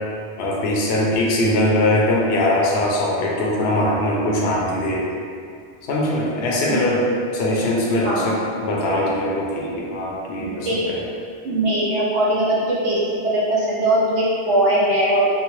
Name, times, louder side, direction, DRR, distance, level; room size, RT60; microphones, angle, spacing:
voice 1, 0.4-5.1 5.9-7.1 7.3-11.0, left 1 dB, 70° left, -3 dB, 0.8 m, -21 dB
voice 2, 8.0-8.4 10.4-10.8 11.4-12.6 12.8-15.3, right 1 dB, 80° right, -7 dB, 0.9 m, -20 dB
4.2 x 2.0 x 3.0 m, 2.4 s
omnidirectional pair, 1.2 m